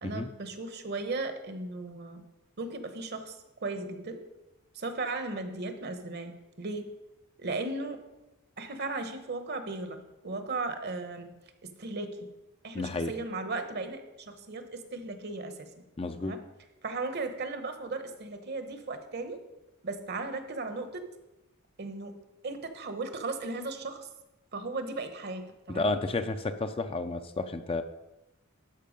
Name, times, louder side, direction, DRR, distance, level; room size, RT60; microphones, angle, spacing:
voice 1, 0.0-2.2 2.6-4.2 4.7-6.3 6.6-6.9 7.4-8.0 8.6-11.3 11.8-12.3 12.6-15.7 16.2-16.4 16.8-19.4 19.8-21.1 21.8-22.1 22.4-24.1 24.5-25.4 25.7-25.9, right 3 dB, 50° right, 8 dB, 1.0 m, -36 dB
voice 2, 12.7-13.1 16.0-16.3 25.7-27.8, left 3 dB, 25° left, 8 dB, 0.5 m, -31 dB
12.0 x 5.6 x 5.2 m, 0.97 s
head